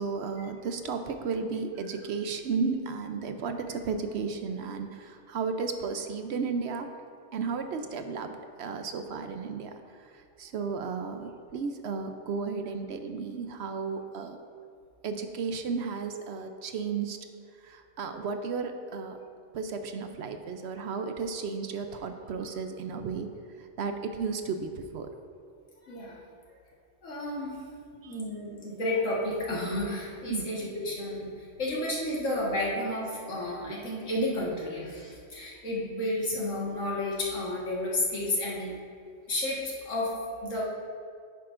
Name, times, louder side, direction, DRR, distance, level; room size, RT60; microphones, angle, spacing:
voice 1, 0.0-6.9 7.3-14.4 15.0-17.2 17.6-19.2 19.5-23.3 23.6-25.1 28.0-28.2 30.3-30.6 33.7-33.8, right 5 dB, 65° right, 7 dB, 0.8 m, -34 dB
voice 2, 25.9-26.2 27.0-27.6 28.0-31.3 31.6-38.7 39.3-40.1 40.4-40.6, left 1 dB, 80° left, -5 dB, 2.0 m, -31 dB
10.5 x 8.5 x 2.5 m, 2.2 s
omnidirectional pair, 1.3 m